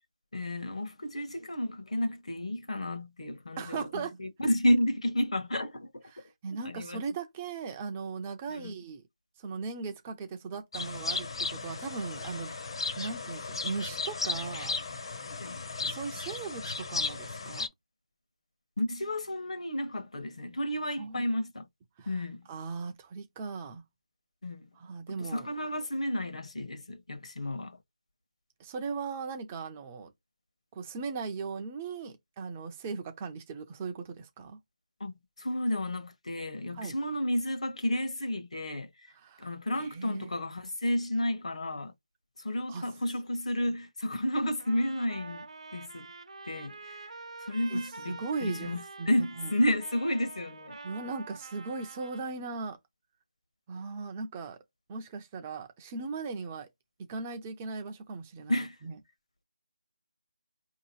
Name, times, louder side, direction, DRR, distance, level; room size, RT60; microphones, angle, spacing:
voice 1, 0.3-6.0 6.6-7.0 8.5-8.7 15.4-15.6 18.8-21.7 22.1-22.4 24.4-24.7 25.2-27.8 35.0-35.1 35.4-38.9 39.4-41.9 42.4-45.5 45.7-46.1 46.5-47.0 47.5-50.8 58.5-58.8, left 1 dB, 65° left, 1.0 m, -31 dB
voice 2, 3.6-4.2 6.1-9.0 9.4-12.5 13.0-14.7 15.8-17.7 21.0-21.2 22.0-22.1 22.5-23.8 24.8-25.5 28.6-30.1 30.7-34.6 36.7-37.0 39.1-39.5 39.8-40.3 42.7-42.9 43.7-43.8 47.7-49.5 50.8-52.8 53.7-54.6 54.9-56.7 57.0-59.0, right 4 dB, 10° right, 0.4 m, -38 dB
sound 1, 10.7-17.7, left 3 dB, 45° left, 0.7 m, -35 dB
Trumpet, 44.6-52.3, right 3 dB, 65° right, 0.8 m, -46 dB
4.7 x 2.7 x 2.9 m
figure-of-eight pair, 170°, 4 cm